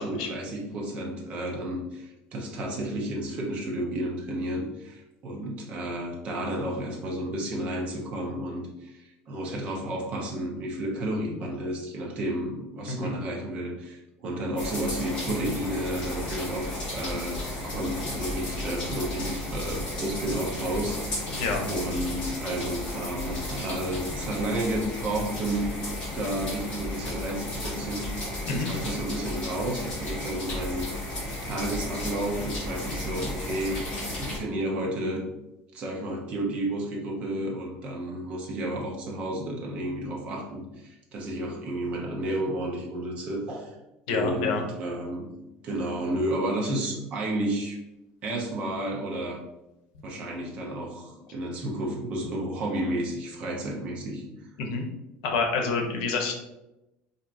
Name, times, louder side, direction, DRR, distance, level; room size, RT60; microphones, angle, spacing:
voice 1, 0.0-21.4 21.7-25.7 26.1-30.8 31.4-33.8 34.2-35.2 35.7-43.7 44.1-45.3 45.6-47.8 48.2-49.4 50.0-54.2, right 1 dB, 35° right, -1 dB, 0.8 m, -32 dB
sound 1, 14.6-34.4, left 1 dB, 30° left, 1.3 m, -34 dB
voice 2, 21.4-21.7 28.5-28.7 44.1-44.7 54.6-54.8 55.2-56.3, left 4 dB, 90° left, 3 dB, 0.8 m, -28 dB
4.5 x 2.7 x 2.6 m, 0.92 s
cardioid pair, 175°, 4 cm